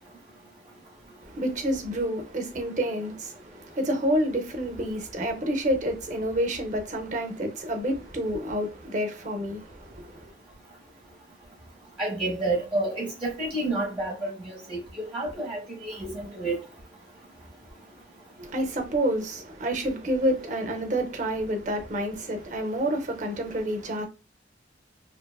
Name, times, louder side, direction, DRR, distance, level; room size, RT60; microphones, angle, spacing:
voice 1, 1.2-10.3 18.4-24.1, right 1 dB, 40° right, 0.5 m, -29 dB
voice 2, 12.0-16.6, right 2 dB, 10° right, 0.8 m, -30 dB
2.6 x 2.3 x 2.2 m
head